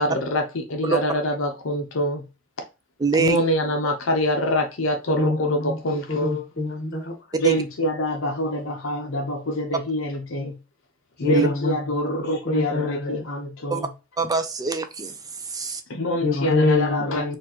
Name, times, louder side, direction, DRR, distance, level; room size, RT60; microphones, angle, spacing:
voice 1, 0.0-2.2 3.2-6.4 7.4-10.6 11.2-13.9 15.9-17.3, equal, 70° left, 0.7 m, -25 dB
voice 2, 3.0-3.4 7.4-7.6 11.3-11.5 13.7-13.8 14.2-15.8, right 4 dB, 20° right, 0.3 m, -24 dB
voice 3, 5.1-5.8 6.1-7.5 11.2-13.2 16.2-17.4, left 3 dB, 55° left, 1.5 m, -25 dB
4.4 x 2.5 x 2.8 m
head